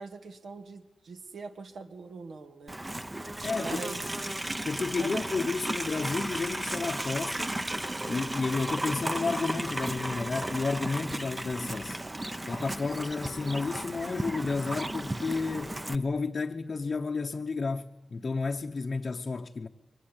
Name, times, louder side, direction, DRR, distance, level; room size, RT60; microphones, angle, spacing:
voice 1, 0.0-2.8 3.6-4.1 4.9-5.3, right 4 dB, 70° right, 1.6 m, -42 dB
Livestock farm animals working animals, 2.7-16.0, right 1 dB, 15° right, 0.8 m, -34 dB
voice 2, 3.4-3.8 4.6-7.6 8.1-12.0 12.5-19.7, left 4 dB, 35° left, 0.9 m, -31 dB
24.0 x 20.0 x 9.9 m
wide cardioid pair, 170°, 0 cm